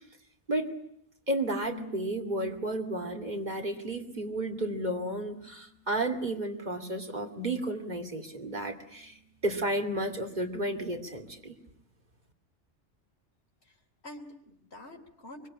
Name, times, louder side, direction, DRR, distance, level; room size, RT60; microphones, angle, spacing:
voice 1, 1.3-9.2 9.4-11.6, right 1 dB, 40° right, 5 dB, 2.8 m, -32 dB
sound 1, 1.6-7.7 8.1-9.4, right 2 dB, 80° left, 4.2 m, -49 dB
voice 2, 13.6-15.5, left 1 dB, 65° left, 0 dB, 3.5 m, -47 dB
24.5 x 24.0 x 10.0 m, 0.71 s
omnidirectional pair, 1.2 m